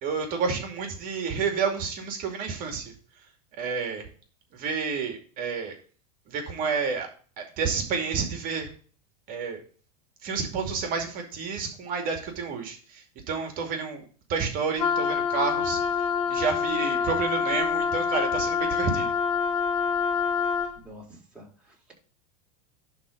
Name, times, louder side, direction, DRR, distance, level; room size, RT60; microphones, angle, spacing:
voice 1, 0.0-2.8 3.6-4.1 4.5-5.8 6.3-7.1 7.4-8.7 9.3-9.6 10.2-14.0 14.3-19.1, right 5 dB, 45° right, 3 dB, 2.4 m, -30 dB
Wind instrument woodwind instrument, 14.8-20.8, left 6 dB, 60° left, 1.8 m, -26 dB
voice 2, 20.7-21.9, equal, 5° right, -2 dB, 4.3 m, -49 dB
11.0 x 3.8 x 5.1 m, 0.41 s
hypercardioid pair, 120°, 21 cm